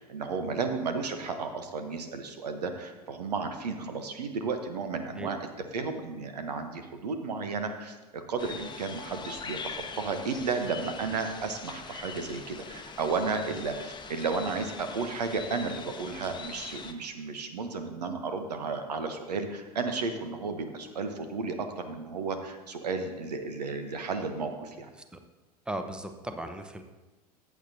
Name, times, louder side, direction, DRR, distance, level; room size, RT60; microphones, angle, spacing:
voice 1, 0.0-5.4 5.7-24.9, right 4 dB, 80° right, 7 dB, 1.0 m, -33 dB
sound 1, 8.4-16.9, left 5 dB, 20° left, 0.9 m, -42 dB
voice 2, 25.7-26.8, right 1 dB, 5° right, 7 dB, 0.8 m, -37 dB
14.5 x 8.4 x 2.8 m, 1.2 s
figure-of-eight pair, 75°, 20 cm